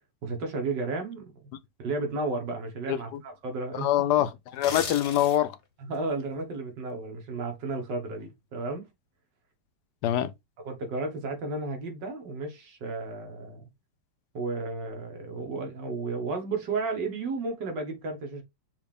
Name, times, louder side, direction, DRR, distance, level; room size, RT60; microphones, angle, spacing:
voice 1, 0.2-1.5 1.8-3.9 5.8-8.9 10.6-13.7 14.3-18.4, right 3 dB, 75° right, 1.9 m, -33 dB
voice 2, 2.9-3.2 3.7-5.6 10.0-10.3, left 12 dB, 75° left, 1.0 m, -25 dB
sound 1, 4.5-5.6 6.0-6.2, left 5 dB, 50° left, 1.0 m, -36 dB
6.1 x 2.5 x 3.3 m
omnidirectional pair, 1.9 m